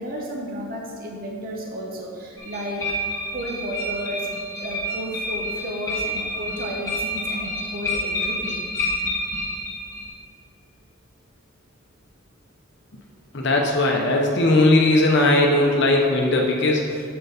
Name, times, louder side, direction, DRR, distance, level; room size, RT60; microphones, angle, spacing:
voice 1, 0.0-2.8 3.3-4.3 4.6-9.1, equal, 45° right, -1 dB, 0.8 m, -32 dB
sound 1, 2.4-10.1, left 1 dB, 15° left, 1.3 m, -29 dB
voice 2, 13.3-17.0, left 2 dB, 55° left, 0 dB, 0.7 m, -18 dB
7.7 x 4.5 x 5.0 m, 2.4 s
head